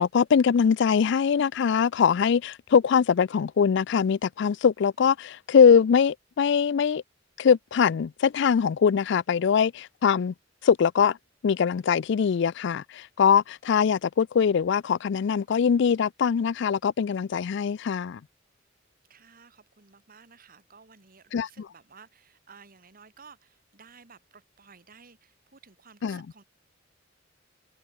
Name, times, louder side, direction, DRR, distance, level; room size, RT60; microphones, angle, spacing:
voice 1, 0.0-7.0 7.4-10.3 10.6-11.2 11.4-18.2 21.3-21.5 26.0-26.2, left 6 dB, 60° left, 0.4 m, -22 dB
voice 2, 19.1-26.4, right 5 dB, 45° right, 1.7 m, -54 dB
head